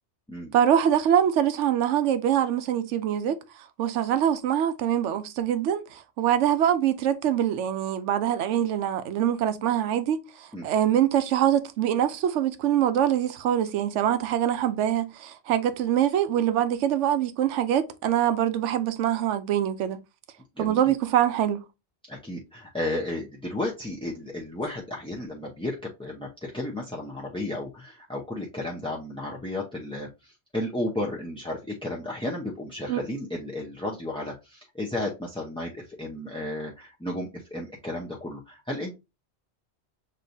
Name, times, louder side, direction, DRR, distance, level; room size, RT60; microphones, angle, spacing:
voice 1, 0.5-3.4 3.8-10.2 10.6-20.0 20.6-21.6 32.9-33.0, right 10 dB, 85° right, 0.9 m, -24 dB
voice 2, 22.1-38.9, left 1 dB, 5° left, 0.5 m, -33 dB
6.6 x 3.0 x 2.6 m
omnidirectional pair, 1.2 m